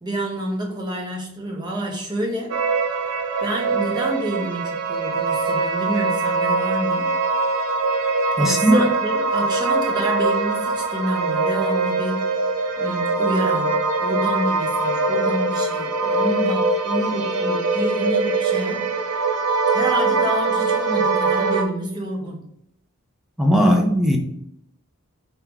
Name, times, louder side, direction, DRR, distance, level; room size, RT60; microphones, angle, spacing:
voice 1, 0.0-2.5 3.0-7.1 8.4-12.4 12.8-19.2 19.7-22.4, right 1 dB, 20° right, -1 dB, 0.9 m, -28 dB
sound 1, 2.5-21.6, right 3 dB, 85° right, 0.6 m, -22 dB
voice 2, 8.4-8.9 23.4-24.2, equal, ahead, 2 dB, 0.5 m, -17 dB
4.5 x 2.8 x 3.6 m, 0.74 s
head